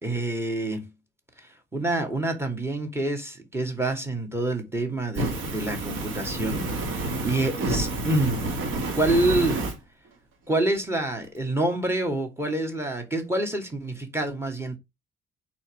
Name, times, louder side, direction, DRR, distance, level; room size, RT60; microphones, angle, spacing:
voice 1, 0.0-0.9 1.4-8.4 9.0-9.6 10.5-14.8, right 2 dB, 10° right, 2.3 m, -27 dB
Fire, 5.1-9.7, right 2 dB, 85° right, 2.2 m, -29 dB
4.5 x 4.4 x 5.9 m
cardioid pair, 90°, 20 cm